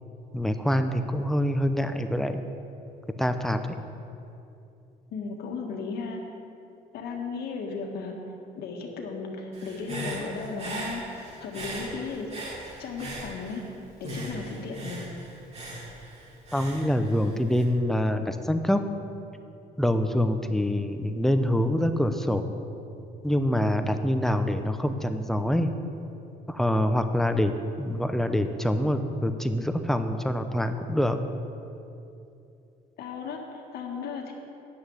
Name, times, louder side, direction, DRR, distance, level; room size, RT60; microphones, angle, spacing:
voice 1, 0.3-2.4 3.2-3.6 16.5-18.8 19.8-22.4 23.2-25.7 26.5-27.5 27.8-31.2, left 1 dB, ahead, 7 dB, 0.7 m, -25 dB
voice 2, 5.1-6.2 6.9-8.1 8.5-12.3 12.8-13.6 14.0-15.1 33.0-34.3, left 4 dB, 70° left, 1 dB, 1.6 m, -35 dB
Human voice / Breathing, 9.5-13.7 14.0-17.6, right 1 dB, 40° right, 2.8 m, -39 dB
9.5 x 6.2 x 8.4 m, 2.7 s
cardioid pair, 110°, 17 cm